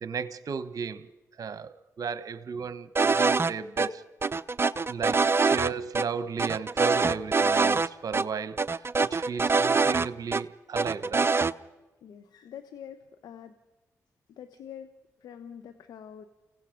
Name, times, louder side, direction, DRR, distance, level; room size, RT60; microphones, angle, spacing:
voice 1, 0.0-1.1 1.4-4.0 4.9-11.5, right 6 dB, 60° right, 13 dB, 1.1 m, -35 dB
sound 1, 3.0-3.5 3.8-3.9 4.2-5.7 6.0-6.1 6.4-7.9 8.1-8.2 8.6-10.4 10.8-11.5, right 4 dB, 35° right, 0.7 m, -24 dB
voice 2, 12.0-13.5 14.3-16.2, left 9 dB, 80° left, 9 dB, 1.0 m, -45 dB
30.0 x 16.5 x 5.2 m, 1.1 s
supercardioid pair, 40°, 7 cm